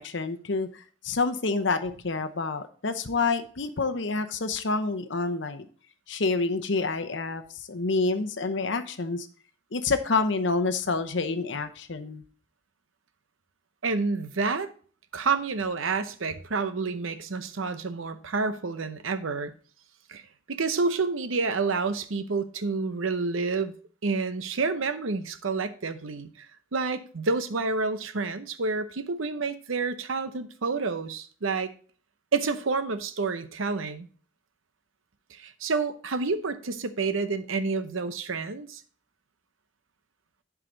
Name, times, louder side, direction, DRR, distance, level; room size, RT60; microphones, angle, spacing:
voice 1, 0.0-5.7 6.1-9.3 9.7-12.2, left 3 dB, 65° left, 0.8 m, -28 dB
voice 2, 13.8-14.7 15.1-19.5 20.1-20.2 20.5-23.7 24.0-26.5 26.7-31.7 32.3-34.1 35.3-38.8, right 4 dB, 80° right, 0.8 m, -29 dB
11.0 x 4.9 x 3.8 m
head